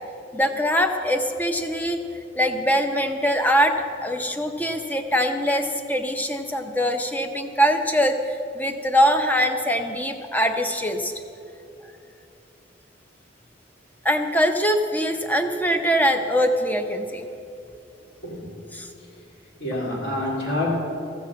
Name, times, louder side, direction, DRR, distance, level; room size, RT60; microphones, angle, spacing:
voice 1, 0.3-2.0 2.4-3.7 4.0-11.1 14.0-17.2 18.7-18.9, equal, 10° left, 6 dB, 0.7 m, -22 dB
voice 2, 18.2-18.8 19.6-20.8, left 1 dB, 55° left, -2 dB, 2.6 m, -27 dB
15.0 x 7.2 x 7.3 m, 2.6 s
head